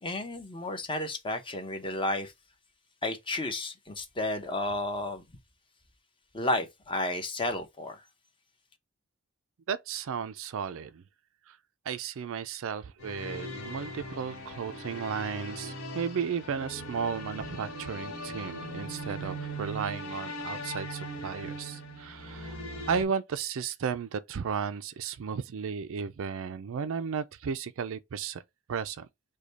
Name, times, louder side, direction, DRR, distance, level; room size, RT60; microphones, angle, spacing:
voice 1, 0.0-2.3 3.0-5.2 6.3-8.0, left 2 dB, 25° left, 0.8 m, -32 dB
voice 2, 9.7-11.0 11.5-11.6 11.9-22.6 22.9-28.4 28.7-29.1, right 6 dB, 65° right, 0.4 m, -34 dB
sound 1, 13.0-23.0, equal, 65° left, 1.4 m, -39 dB
4.9 x 2.3 x 4.0 m
head